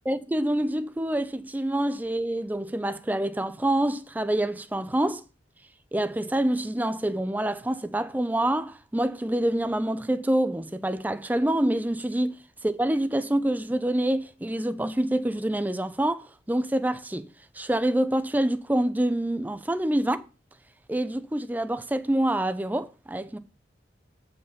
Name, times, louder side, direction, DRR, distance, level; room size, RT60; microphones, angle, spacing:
voice 1, 0.1-5.2 5.9-12.3 12.6-17.3 17.6-20.2 20.9-23.4, right 1 dB, 10° right, 0.4 m, -26 dB
8.3 x 5.5 x 5.5 m
head